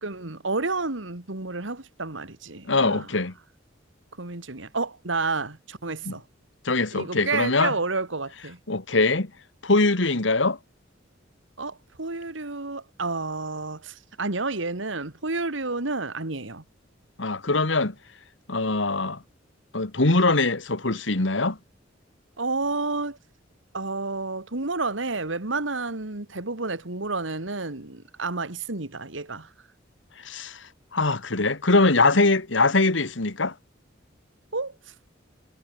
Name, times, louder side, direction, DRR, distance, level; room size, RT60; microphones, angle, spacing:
voice 1, 0.0-3.1 4.2-6.2 6.9-8.6 11.6-16.6 22.4-23.2 23.7-29.5 34.5-34.7, right 3 dB, 75° right, 2.3 m, -30 dB
voice 2, 2.7-3.3 6.1-6.2 6.7-7.7 8.7-9.3 9.6-10.6 17.2-17.9 18.5-19.2 19.7-21.6 30.2-30.6 30.9-33.5, left 3 dB, 70° left, 2.0 m, -22 dB
head